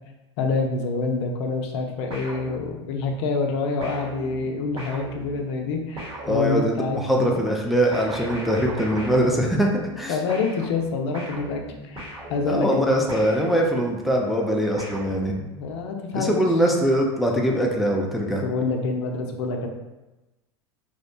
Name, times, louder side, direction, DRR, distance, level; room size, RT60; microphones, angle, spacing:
voice 1, 0.4-7.5 10.1-13.0 15.6-16.4 18.2-19.7, left 4 dB, 65° left, 3 dB, 0.4 m, -27 dB
sound 1, 2.1-3.1 3.8-7.0 7.9-10.0 10.3-14.0 14.8-15.8, right 1 dB, 35° right, 1.0 m, -38 dB
voice 2, 6.2-9.7 10.0-10.2 12.5-15.3 16.1-18.4, equal, ahead, -1 dB, 0.3 m, -22 dB
2.7 x 2.0 x 2.6 m, 1.0 s
hypercardioid pair, 95°, 15 cm